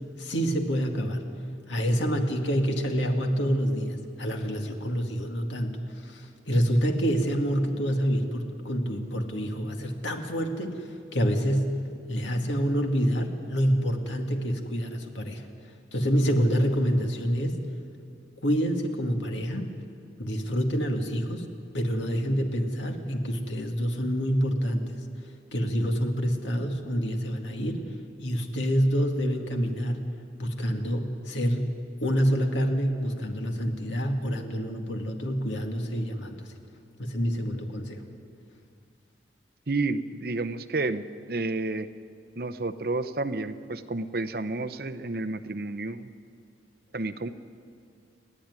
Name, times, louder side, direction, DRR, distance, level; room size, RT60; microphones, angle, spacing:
voice 1, 0.2-1.2 1.7-10.8 11.1-11.8 12.1-15.4 15.9-17.6 18.4-19.7 20.2-21.4 21.7-24.9 25.5-27.8 28.2-30.1 30.4-31.8 32.0-36.4 37.0-38.0, equal, 90° left, 3 dB, 2.2 m, -27 dB
voice 2, 39.7-41.9 42.4-46.1 46.9-47.3, right 2 dB, 55° right, 12 dB, 0.8 m, -30 dB
30.0 x 10.5 x 9.8 m, 2.3 s
head